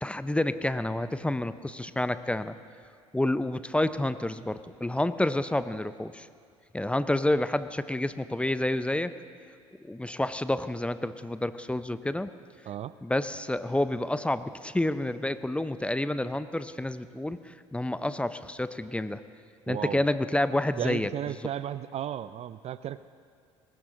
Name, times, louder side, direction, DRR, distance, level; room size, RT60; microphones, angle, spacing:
voice 1, 0.0-2.6 3.1-6.3 6.7-9.1 9.8-12.3 13.0-19.2 19.7-21.1, left 1 dB, 5° left, 13 dB, 0.6 m, -29 dB
voice 2, 19.7-20.1 20.8-23.0, right 11 dB, 40° right, 15 dB, 0.4 m, -34 dB
20.0 x 17.5 x 3.8 m, 2.3 s
hypercardioid pair, 60°, 16 cm